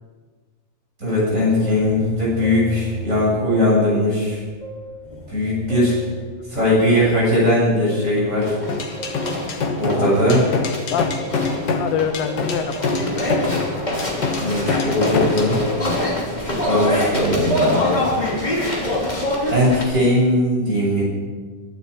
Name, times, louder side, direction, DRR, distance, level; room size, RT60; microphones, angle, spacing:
voice 1, 1.0-4.4 5.3-5.9 6.5-8.6 9.7-10.4 14.4-15.6 16.4-18.0 19.5-21.0, left 1 dB, 20° right, -6 dB, 7.3 m, -19 dB
sound 1, 1.6-3.3 3.5-4.3 4.6-6.4 6.8-7.5 7.9-19.8, left 1 dB, 15° left, 2.6 m, -26 dB
sound 2, 8.7-15.6, left 4 dB, 60° left, 1.2 m, -25 dB
voice 2, 11.8-13.7 14.8-14.9, left 8 dB, 90° left, 8 dB, 2.8 m, -26 dB
24.0 x 12.0 x 4.8 m, 1.5 s
omnidirectional pair, 3.9 m